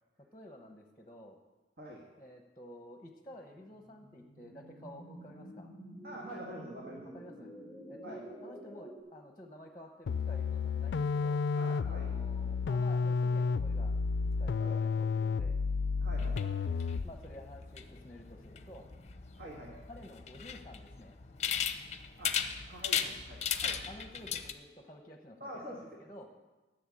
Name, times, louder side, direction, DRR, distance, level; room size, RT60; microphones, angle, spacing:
voice 1, 0.3-1.4 2.2-5.7 7.1-7.5 7.9-11.4 11.8-13.9 14.4-15.6 16.5-18.9 19.5-21.1 23.6-26.3, left 1 dB, 20° left, 3 dB, 0.9 m, -51 dB
voice 2, 1.8-2.1 6.0-7.5 8.0-8.2 11.6-12.2 14.6-14.8 16.0-16.5 19.3-19.8 22.2-22.3 22.7-23.8 25.4-25.9, equal, 60° right, -2 dB, 1.7 m, -46 dB
sound 1, 3.5-9.0, right 1 dB, 25° right, 4.2 m, -49 dB
sound 2, 10.1-17.2, left 5 dB, 85° left, 0.3 m, -31 dB
sound 3, 16.1-24.5, left 7 dB, 40° left, 0.6 m, -38 dB
11.5 x 6.7 x 8.5 m, 1.2 s
head